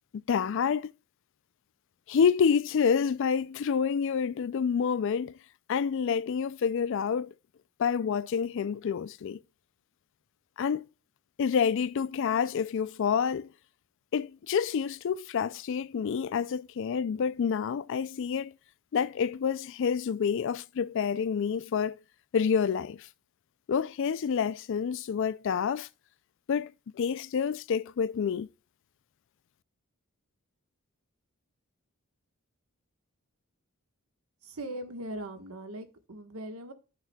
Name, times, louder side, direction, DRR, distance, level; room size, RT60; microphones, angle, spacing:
voice 1, 0.3-0.9 2.1-5.3 5.7-7.3 7.8-9.4 10.6-10.9 11.4-13.5 14.1-18.5 18.9-22.0 22.3-23.1 23.7-25.9 26.5-26.7 27.0-28.5, left 6 dB, 60° left, 0.3 m, -28 dB
voice 2, 34.4-36.7, right 1 dB, 80° right, 1.3 m, -40 dB
13.5 x 5.7 x 2.3 m
head